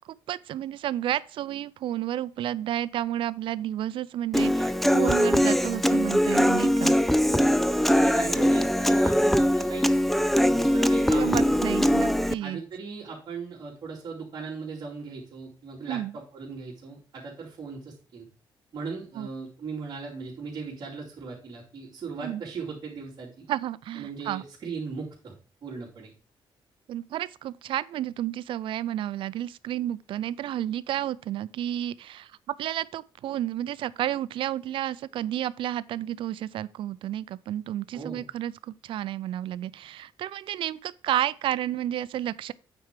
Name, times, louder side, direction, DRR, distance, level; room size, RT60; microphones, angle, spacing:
voice 1, 0.1-6.9 11.1-12.6 15.9-16.1 19.2-19.3 22.2-22.4 23.5-24.4 26.9-42.5, right 12 dB, 75° right, 0.4 m, -31 dB
Human voice / Acoustic guitar, 4.3-12.3, equal, ahead, 0.3 m, -22 dB
voice 2, 7.9-10.1 10.4-11.8 12.4-18.3 18.7-23.3 23.9-25.3 25.6-26.1 37.9-38.2, right 5 dB, 50° right, 2.8 m, -38 dB
9.0 x 4.5 x 5.0 m
cardioid pair, 150°, 9 cm